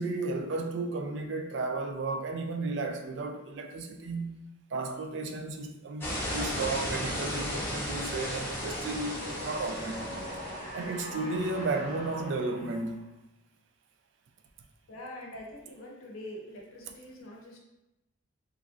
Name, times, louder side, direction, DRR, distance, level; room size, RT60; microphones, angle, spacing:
voice 1, 0.0-4.4 4.7-10.0 10.7-13.0, right 3 dB, 55° right, 0.3 m, -33 dB
sound 1, 6.0-10.8, equal, 10° left, 0.6 m, -35 dB
sound 2, 6.3-13.0, equal, 35° right, 0.9 m, -43 dB
voice 2, 14.9-17.6, left 1 dB, 80° left, 0.7 m, -44 dB
3.1 x 2.4 x 2.4 m
head